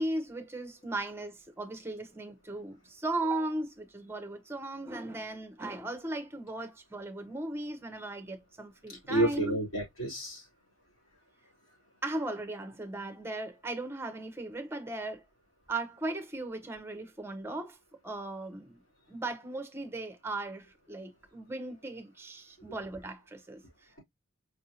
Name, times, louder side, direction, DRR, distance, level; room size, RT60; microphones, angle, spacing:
voice 1, 0.0-9.6 12.0-15.2 15.7-17.8 18.0-18.8 19.1-23.9, right 2 dB, 10° right, 0.6 m, -37 dB
voice 2, 8.9-10.5, right 1 dB, 85° left, 2.9 m, -30 dB
4.7 x 2.7 x 2.6 m
head